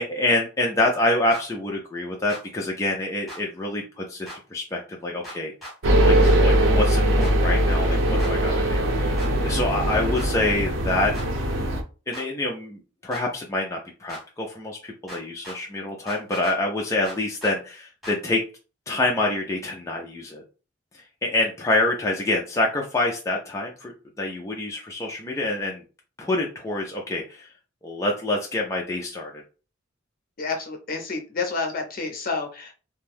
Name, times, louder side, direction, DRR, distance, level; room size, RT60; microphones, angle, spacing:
voice 1, 0.0-5.5 6.0-11.1 12.1-18.4 18.9-20.4 20.9-23.9 24.2-25.8 26.2-27.5 27.8-29.4, left 2 dB, 15° left, -1 dB, 0.4 m, -26 dB
sound 1, 1.3-1.4 2.3-2.4 3.3-3.4 4.3-4.4 5.2-5.8 6.2-6.4 7.2-7.3 8.2-8.3 9.2-9.3 10.2-10.3 11.1-11.3 12.1-12.3 13.1-13.3 14.1-14.2 15.1-15.6 16.1-16.6 17.0-17.6 18.0-18.2, equal, ahead, 1.1 m, -39 dB
sound 2, 5.8-11.8, right 1 dB, 85° right, 0.6 m, -21 dB
voice 2, 30.4-32.7, left 4 dB, 50° left, 3 dB, 0.7 m, -29 dB
2.5 x 2.2 x 3.3 m, 0.34 s
head